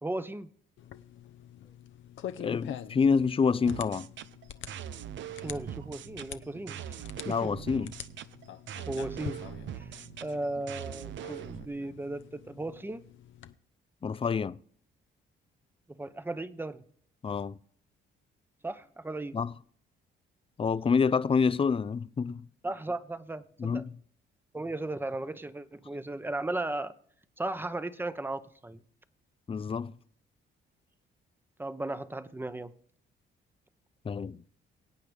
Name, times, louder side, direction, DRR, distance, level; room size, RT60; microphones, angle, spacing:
voice 1, 0.0-0.5 5.4-7.5 8.9-13.0 15.9-16.8 18.6-19.4 22.6-23.8 24.5-26.9 27.4-28.8 31.6-32.7, right 2 dB, 10° right, 0.9 m, -36 dB
sound 1, 0.8-13.5, left 10 dB, 75° left, 0.8 m, -46 dB
voice 2, 2.4-4.1 7.3-7.9 14.0-14.6 17.2-17.6 19.3-19.5 20.6-22.4 23.6-24.0 29.5-29.9 34.0-34.4, left 5 dB, 30° left, 0.5 m, -27 dB
sound 2, 3.7-11.7, right 10 dB, 70° right, 0.7 m, -42 dB
23.5 x 8.7 x 3.4 m
cardioid pair, 90°, 20 cm